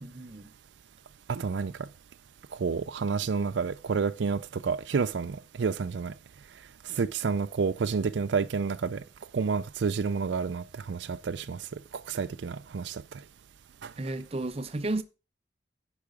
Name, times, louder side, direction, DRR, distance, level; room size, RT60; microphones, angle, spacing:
voice 1, 0.0-0.5 14.0-15.0, right 2 dB, 35° right, 0.7 m, -33 dB
voice 2, 1.3-1.7 2.6-6.1 6.9-9.0 9.3-11.6 12.1-13.0 13.8-13.9, right 5 dB, 75° right, 0.4 m, -29 dB
10.5 x 5.0 x 4.9 m
head